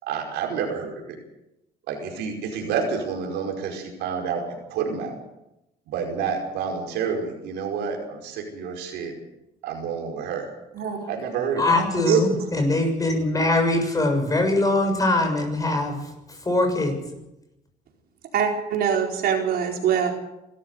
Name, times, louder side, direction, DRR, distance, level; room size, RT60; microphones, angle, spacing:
voice 1, 0.0-1.2 1.9-5.2 5.9-9.1 9.6-10.5 11.1-11.8, right 6 dB, 85° right, 2 dB, 5.2 m, -29 dB
voice 2, 11.6-17.0, left 2 dB, 20° left, 4 dB, 7.0 m, -22 dB
voice 3, 18.3-20.1, right 8 dB, 65° right, 2 dB, 4.6 m, -23 dB
24.5 x 14.0 x 8.2 m, 0.91 s
cardioid pair, 110°, 17 cm